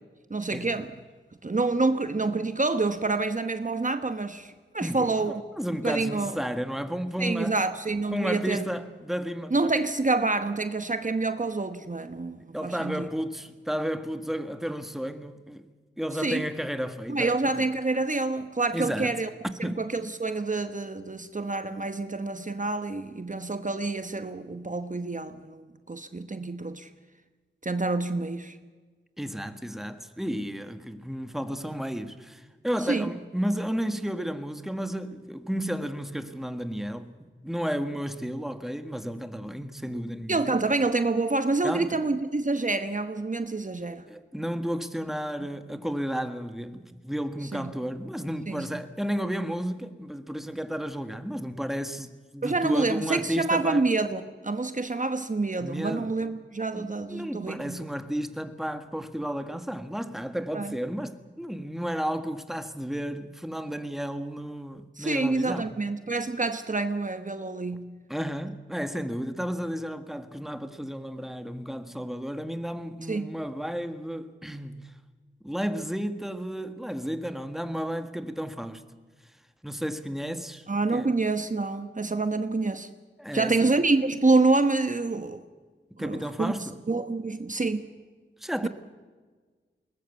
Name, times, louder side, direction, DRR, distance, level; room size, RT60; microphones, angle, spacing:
voice 1, 0.3-0.9 1.4-5.3 5.8-6.4 7.2-8.6 9.5-13.1 16.2-16.5 17.1-19.3 19.6-26.9 27.6-28.6 32.9-33.1 40.3-44.0 47.5-47.7 48.5-48.7 52.4-57.8 60.5-60.7 65.0-67.9 73.1-73.3 80.7-82.9 83.3-85.4 86.0-86.5 86.9-87.9 88.6-88.7, right 3 dB, 40° right, 1.1 m, -27 dB
voice 2, 4.8-7.6 8.1-9.5 12.5-15.7 16.0-17.7 18.7-19.2 19.6-19.8 29.2-40.6 41.6-42.0 44.1-53.9 55.6-56.2 56.7-65.7 68.1-74.9 75.4-78.9 79.6-80.7 80.9-81.1 83.2-83.7 85.9-86.8 88.4-88.7, equal, ahead, 1.6 m, -32 dB
21.5 x 19.5 x 8.2 m
wide cardioid pair, 70°, 20 cm